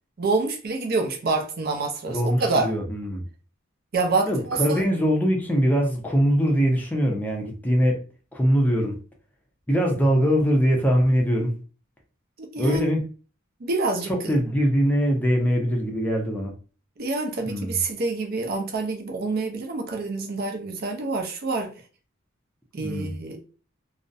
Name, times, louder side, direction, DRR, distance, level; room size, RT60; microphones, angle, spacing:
voice 1, 0.2-2.7 3.9-4.8 12.4-12.9 13.6-14.1 17.0-21.7 22.7-23.4, right 3 dB, 45° right, 0.5 m, -27 dB
voice 2, 2.1-3.2 4.3-8.0 8.3-9.0 9.7-11.6 12.6-13.0 14.1-16.5 17.5-17.8 22.8-23.1, equal, 10° left, 0.5 m, -22 dB
2.4 x 2.0 x 2.5 m
head